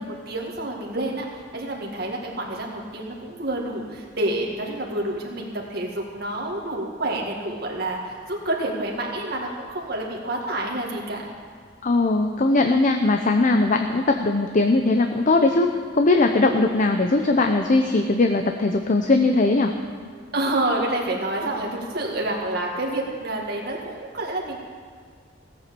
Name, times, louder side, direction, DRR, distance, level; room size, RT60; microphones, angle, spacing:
voice 1, 0.0-11.3 20.3-24.6, right 1 dB, 55° right, -2 dB, 2.0 m, -28 dB
voice 2, 11.8-19.7, left 2 dB, 45° left, 5 dB, 0.7 m, -20 dB
16.5 x 8.2 x 6.9 m, 2.1 s
head